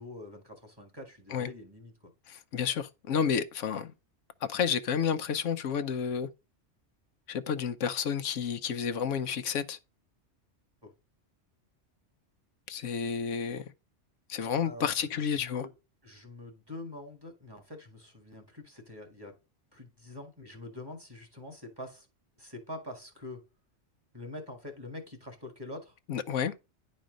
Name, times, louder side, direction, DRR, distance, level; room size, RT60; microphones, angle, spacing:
voice 1, 0.0-1.9 10.8-10.9 14.6-15.7 16.0-19.3 19.7-22.1 22.4-23.4 24.1-25.9, left 2 dB, 20° right, 1.8 m, -45 dB
voice 2, 2.3-3.9 4.4-6.3 7.3-9.8 12.7-13.7 14.3-15.7 26.1-26.5, left 7 dB, 85° left, 1.1 m, -31 dB
10.5 x 4.2 x 5.2 m
omnidirectional pair, 1.2 m